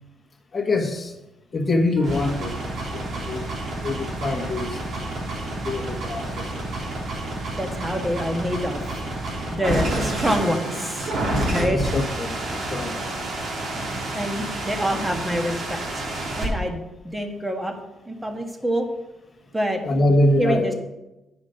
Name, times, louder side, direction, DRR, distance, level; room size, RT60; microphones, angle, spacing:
voice 1, 0.5-1.2 1.5-2.5 2.9-3.4 3.8-5.1 5.6-6.6 9.9-10.0 10.4-10.5 11.5-13.1 19.8-20.8, left 1 dB, 35° left, 4 dB, 1.4 m, -24 dB
sound 1, 2.0-16.5, right 1 dB, 65° right, 3.0 m, -29 dB
voice 2, 7.6-8.9 9.5-11.1 11.4-11.8 14.1-15.8 16.4-16.8 17.1-17.7 18.1-18.8 19.5-19.8 20.4-20.8, equal, 10° right, 3 dB, 1.5 m, -26 dB
9.4 x 5.1 x 5.6 m, 0.98 s
cardioid pair, 90°, 0 cm